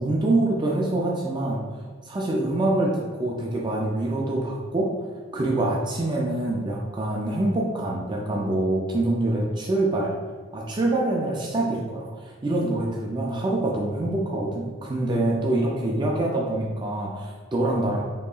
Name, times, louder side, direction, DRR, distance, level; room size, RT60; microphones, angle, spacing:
voice 1, 0.0-1.6 2.1-4.9 5.3-10.1 10.5-18.0, right 2 dB, 20° right, -2 dB, 0.4 m, -25 dB
4.4 x 2.8 x 2.4 m, 1.5 s
head